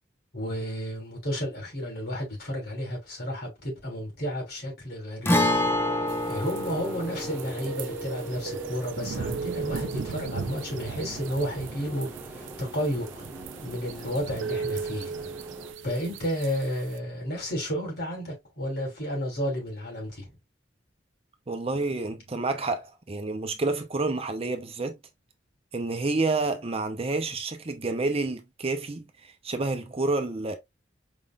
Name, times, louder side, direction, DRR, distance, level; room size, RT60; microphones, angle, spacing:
voice 1, 0.3-5.5 6.2-12.1 12.3-13.3 13.6-15.1 15.8-20.3, equal, 60° left, 3.1 m, -32 dB
Guitar, 5.3-12.9 13.1-13.2 15.3-15.4, left 1 dB, 15° left, 0.8 m, -30 dB
sound 1, 5.4-15.7, right 1 dB, 15° right, 1.3 m, -44 dB
sound 2, 6.1-17.0, right 5 dB, 90° right, 0.4 m, -37 dB
voice 2, 21.5-25.0 25.7-30.6, right 3 dB, 35° right, 0.7 m, -29 dB
5.1 x 3.7 x 2.4 m
head